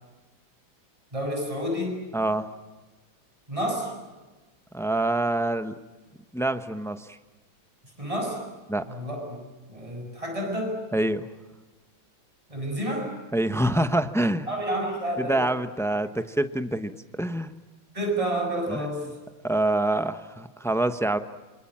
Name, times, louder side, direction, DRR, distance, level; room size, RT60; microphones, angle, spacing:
voice 1, 1.1-2.0 3.5-3.9 8.0-8.4 8.8-9.4 9.7-10.8 12.5-13.1 14.5-15.4 17.9-19.1, right 1 dB, 15° right, 2 dB, 7.0 m, -29 dB
voice 2, 2.1-2.5 4.7-5.7 6.3-7.2 8.7-8.9 10.9-11.3 13.3-14.5 15.2-17.5 18.7-19.0 19.4-21.2, right 1 dB, 5° left, 10 dB, 0.6 m, -26 dB
27.0 x 26.5 x 7.5 m, 1.2 s
omnidirectional pair, 2.2 m